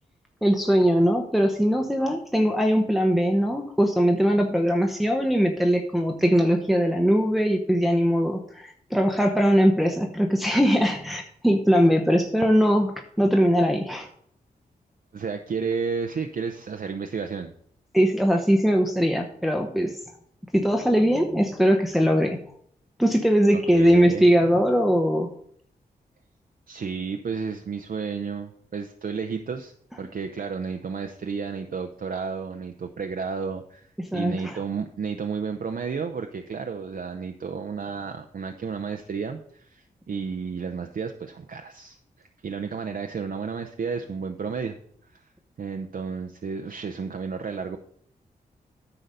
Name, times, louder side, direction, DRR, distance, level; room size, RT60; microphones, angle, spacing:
voice 1, 0.4-14.1 17.9-20.0 20.5-22.4 23.0-25.3 34.1-34.5, equal, ahead, 3 dB, 0.9 m, -21 dB
voice 2, 15.1-17.5 23.5-24.3 26.7-44.8 45.0-45.3 45.6-47.8, right 5 dB, 55° right, 5 dB, 0.6 m, -32 dB
9.9 x 4.0 x 6.6 m, 0.65 s
cardioid pair, 50°, 17 cm